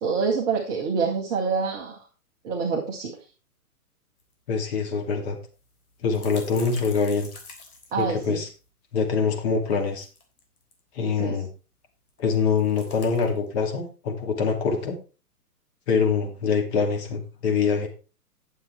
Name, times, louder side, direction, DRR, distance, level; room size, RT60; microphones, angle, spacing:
voice 1, 0.0-2.0 2.4-3.1 7.9-8.4 11.2-11.4, right 5 dB, 10° right, -2 dB, 0.4 m, -26 dB
sound 1, 4.2-4.3 4.6-4.7 5.5-8.7 9.7-10.8 12.1-13.5, left 3 dB, 70° left, 3.7 m, -46 dB
voice 2, 4.5-5.4 6.0-7.3 8.0-8.5 8.9-10.1 10.9-11.5 12.2-15.0 15.9-17.9, left 5 dB, 45° left, 4 dB, 2.7 m, -24 dB
9.8 x 7.1 x 4.4 m, 0.34 s
hypercardioid pair, 135°, 46 cm